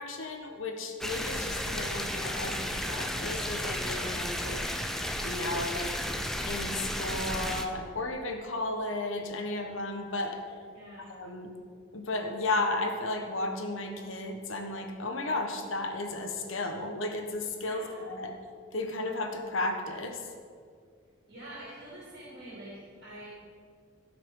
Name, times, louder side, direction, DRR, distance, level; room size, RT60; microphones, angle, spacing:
voice 1, 0.0-4.6 5.2-6.0 6.5-10.4 11.1-11.5 11.9-18.3 18.7-20.2, left 2 dB, 80° left, 4 dB, 1.2 m, -34 dB
sound 1, 1.0-7.7, equal, ahead, 0.6 m, -33 dB
voice 2, 10.7-11.1 17.6-18.2 21.3-23.3, right 1 dB, 55° right, -7 dB, 3.2 m, -46 dB
16.0 x 5.9 x 4.7 m, 2.1 s
head